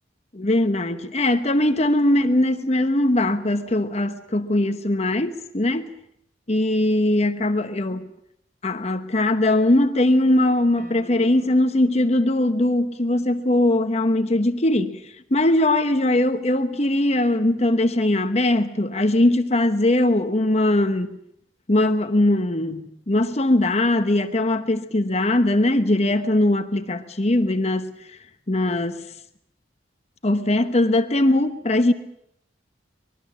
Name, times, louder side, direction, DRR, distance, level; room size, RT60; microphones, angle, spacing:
voice 1, 0.3-5.9 6.5-8.1 8.6-15.0 15.3-21.2 21.7-28.0 28.5-29.0 30.2-31.9, left 1 dB, 35° left, 1.0 m, -20 dB
sound 1, 10.8-11.8, left 1 dB, 50° right, 3.0 m, -46 dB
24.5 x 21.0 x 7.4 m
head